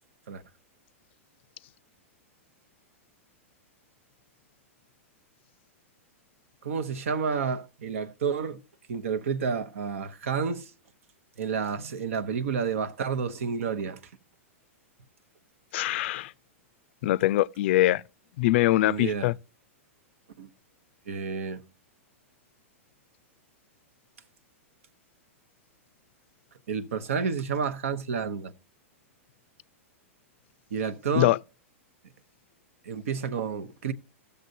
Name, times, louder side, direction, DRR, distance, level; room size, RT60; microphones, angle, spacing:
voice 1, 6.6-8.6 8.9-10.7 11.4-14.0 18.8-19.3 20.4-20.5 21.1-21.6 26.7-28.5 30.7-31.3 32.8-33.9, right 6 dB, 75° right, 0.9 m, -30 dB
voice 2, 15.7-16.3 17.0-18.0 18.4-19.3 31.1-31.4, left 16 dB, 60° left, 0.4 m, -23 dB
14.0 x 6.8 x 2.7 m
hypercardioid pair, 120°, 7 cm